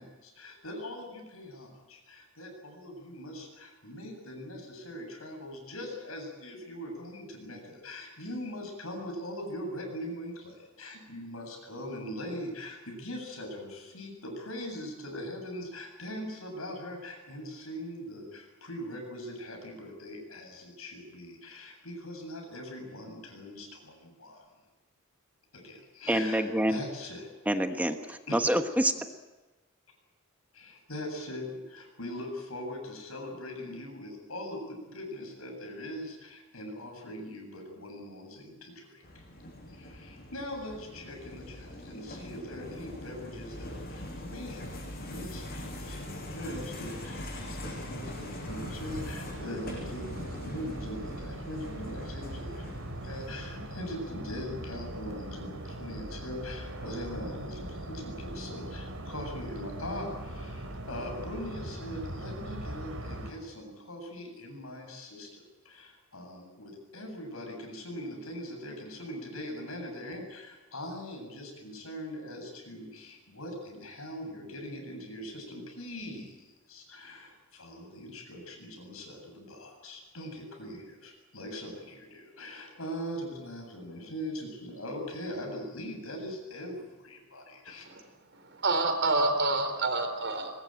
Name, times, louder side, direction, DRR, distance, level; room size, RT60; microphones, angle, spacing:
voice 1, 0.0-24.5 25.5-26.4 26.7-27.3 28.3-28.4 30.5-39.2 39.7-87.8, left 1 dB, 85° left, 2 dB, 7.9 m, -41 dB
voice 2, 26.1-26.8 27.5-28.9, right 1 dB, 5° right, 7 dB, 1.1 m, -27 dB
sound 1, 39.0-54.1, left 1 dB, 50° left, 7.1 m, -42 dB
sound 2, 48.5-63.3, right 1 dB, 85° right, 3.5 m, -40 dB
voice 3, 88.3-90.5, right 2 dB, 60° right, 7 dB, 3.9 m, -28 dB
23.5 x 20.0 x 9.0 m, 1.1 s
head